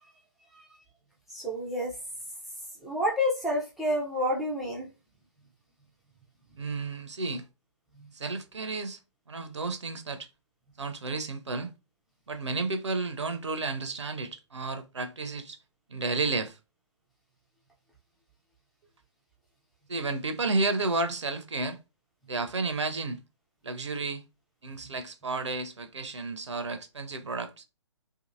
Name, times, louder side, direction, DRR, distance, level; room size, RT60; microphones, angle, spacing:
voice 1, 1.3-1.9 2.8-4.9, left 1 dB, ahead, 0.4 m, -29 dB
voice 2, 6.6-7.5 8.1-9.0 9.3-10.3 10.8-11.7 12.3-15.6 15.9-16.6 19.9-21.8 22.3-23.2 23.6-24.2 24.6-27.6, right 3 dB, 70° right, 0.5 m, -32 dB
2.6 x 2.6 x 2.5 m
figure-of-eight pair, 135°, 16 cm